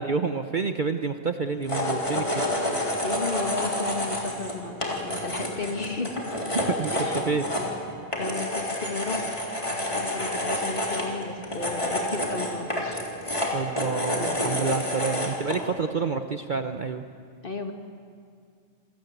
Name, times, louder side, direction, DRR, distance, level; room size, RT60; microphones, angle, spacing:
voice 1, 0.0-2.4 6.5-7.4 13.5-17.0, right 5 dB, 40° right, 7 dB, 0.8 m, -28 dB
sound 1, 1.6-15.6, left 1 dB, 20° left, 3.6 m, -29 dB
voice 2, 3.0-6.2 6.9-7.3 8.2-9.4 9.9-13.0 14.1-14.3 14.5-14.6 15.9-16.2 17.4-17.7, left 3 dB, 40° left, 4 dB, 2.1 m, -34 dB
28.0 x 18.0 x 8.1 m, 2.1 s
omnidirectional pair, 1.4 m